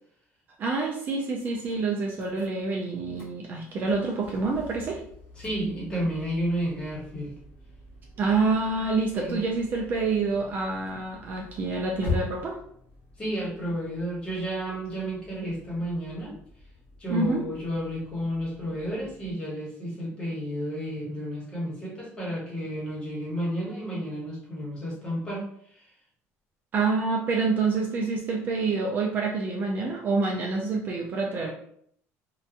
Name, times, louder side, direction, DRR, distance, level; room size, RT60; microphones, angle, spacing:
voice 1, 0.6-5.0 8.2-12.6 17.1-17.4 26.7-31.5, right 3 dB, 35° right, 0 dB, 0.4 m, -27 dB
sound 1, 1.4-19.3, left 2 dB, 40° left, 0.8 m, -43 dB
voice 2, 5.4-7.4 9.1-9.4 13.2-16.3 17.0-25.9, equal, 20° left, -6 dB, 1.0 m, -32 dB
2.8 x 2.2 x 2.4 m, 0.66 s
cardioid pair, 170°, 6 cm